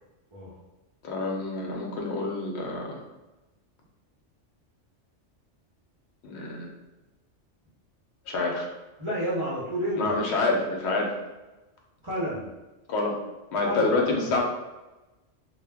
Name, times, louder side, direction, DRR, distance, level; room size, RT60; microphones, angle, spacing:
voice 1, 1.0-3.0 6.2-6.7 8.3-8.7 10.0-11.2 12.9-13.2 13.5-14.4, left 3 dB, 70° left, 0 dB, 0.9 m, -27 dB
voice 2, 9.0-10.1 12.0-12.5 13.6-14.3, equal, 35° right, -8 dB, 0.6 m, -30 dB
2.2 x 2.1 x 3.3 m, 1.1 s
omnidirectional pair, 1.2 m